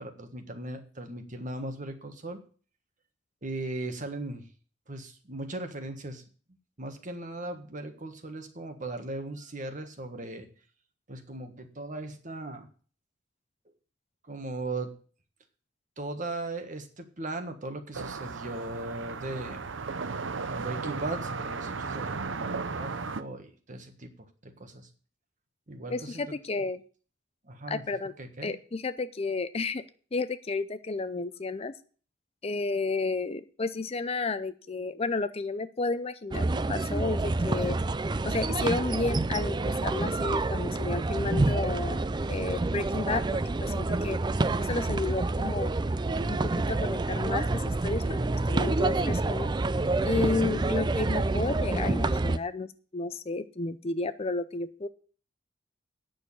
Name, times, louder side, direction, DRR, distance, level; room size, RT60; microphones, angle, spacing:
voice 1, 0.0-2.4 3.4-4.4 4.9-6.2 6.8-10.5 11.1-12.7 14.3-14.9 16.0-19.6 20.5-24.9 25.7-26.3 27.4-27.8 28.2-28.5, right 2 dB, 45° right, 7 dB, 1.5 m, -38 dB
sound 1, 17.9-23.2, right 4 dB, 85° right, 0.7 m, -35 dB
voice 2, 25.9-26.8 27.7-28.1 28.4-29.8 30.1-31.7 32.4-37.8 38.2-42.0 42.3-44.2 44.6-45.7 46.3-48.2 48.5-49.5 50.0-54.9, left 3 dB, 30° left, 12 dB, 0.5 m, -32 dB
sound 2, 36.3-52.4, right 2 dB, 25° right, 0.4 m, -28 dB
9.5 x 6.5 x 8.5 m, 0.41 s
head